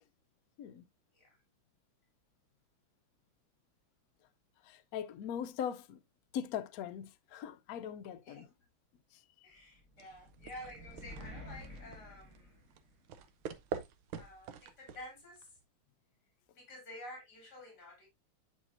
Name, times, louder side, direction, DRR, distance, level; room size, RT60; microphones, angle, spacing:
voice 1, 4.6-6.0 6.3-8.5, left 9 dB, 90° left, 0.8 m, -40 dB
voice 2, 9.4-12.6 14.1-15.5 16.6-18.1, left 1 dB, 50° left, 4.1 m, -50 dB
sound 1, 9.7-13.2, left 1 dB, 40° right, 2.4 m, -51 dB
sound 2, 10.0-15.6, right 7 dB, 85° right, 1.7 m, -46 dB
9.9 x 4.8 x 2.6 m
omnidirectional pair, 2.3 m